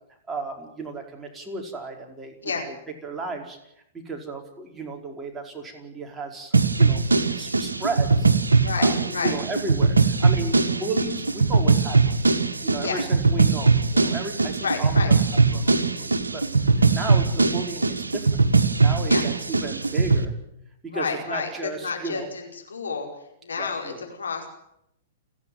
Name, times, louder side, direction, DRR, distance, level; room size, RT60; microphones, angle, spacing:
voice 1, 0.3-2.6 3.0-3.6 3.9-7.0 7.3-8.3 8.8-12.2 12.6-15.2 15.5-16.4 16.8-18.4 18.8-20.3 20.8-22.3 23.6-24.0, right 3 dB, 15° right, 1 dB, 4.8 m, -34 dB
sound 1, 6.5-20.2, right 4 dB, 85° right, 1.7 m, -20 dB
voice 2, 8.6-9.4 10.5-10.8 12.8-13.0 14.6-15.1 19.1-19.3 20.9-23.1 23.4-24.5, left 5 dB, 80° left, 2 dB, 5.0 m, -30 dB
30.0 x 10.5 x 9.3 m, 0.78 s
hypercardioid pair, 110°, 0 cm